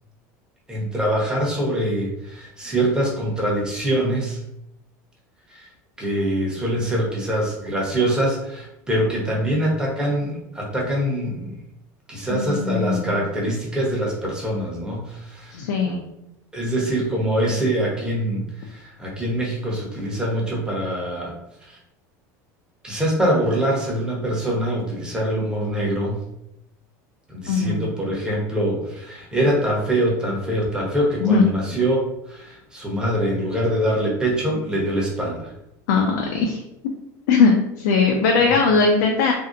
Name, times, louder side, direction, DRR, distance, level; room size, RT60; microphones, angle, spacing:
voice 1, 0.7-4.4 5.5-5.7 6.0-11.5 12.1-15.9 16.5-21.3 21.7-21.8 22.8-26.2 27.3-35.5 38.5-38.6, right 1 dB, 10° right, -3 dB, 0.8 m, -24 dB
voice 2, 12.3-13.2 15.5-16.0 27.5-27.8 31.2-31.4 35.9-36.6 37.3-39.3, left 4 dB, 85° left, 1 dB, 0.4 m, -19 dB
2.6 x 2.0 x 2.5 m, 0.84 s
supercardioid pair, 110°, 9 cm